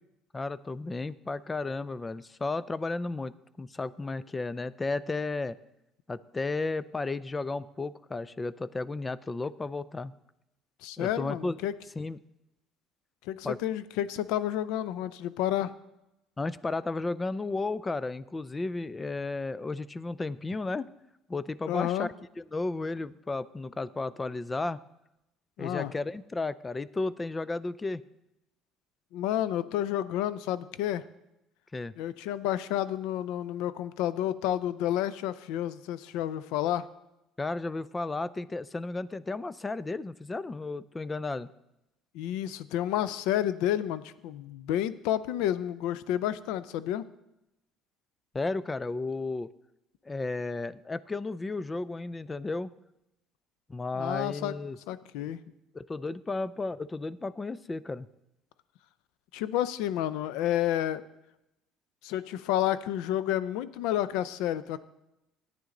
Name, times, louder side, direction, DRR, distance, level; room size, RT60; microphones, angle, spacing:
voice 1, 0.3-5.6 6.1-10.1 11.0-11.6 12.0-12.2 13.4-13.6 16.4-20.9 21.3-22.1 22.4-24.8 25.6-28.0 31.7-31.9 37.4-41.5 48.3-49.5 50.1-52.7 53.7-54.8 55.7-58.1, left 3 dB, 15° left, 18 dB, 0.4 m, -33 dB
voice 2, 10.8-11.7 13.3-15.7 21.7-22.1 25.6-25.9 29.1-31.0 32.0-36.9 42.1-47.0 53.9-54.5 54.9-55.4 59.3-61.0 62.0-64.8, left 12 dB, 80° left, 16 dB, 0.5 m, -30 dB
14.0 x 9.2 x 3.8 m, 0.90 s
cardioid pair, 125°, 0 cm